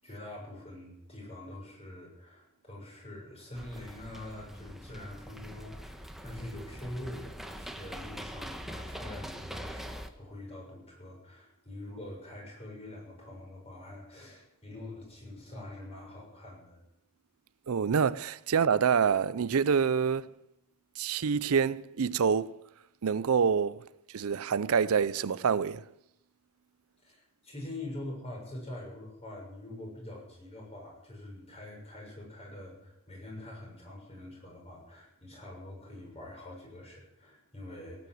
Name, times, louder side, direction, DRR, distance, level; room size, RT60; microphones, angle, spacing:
voice 1, 0.0-16.8 27.0-38.1, left 1 dB, 30° left, 6.6 m, -44 dB
sound 1, 3.5-10.1, equal, ahead, 1.1 m, -43 dB
voice 2, 17.7-20.3 21.0-22.6 23.0-23.9 24.1-25.9, right 6 dB, 70° right, 0.5 m, -26 dB
17.5 x 9.6 x 7.7 m
head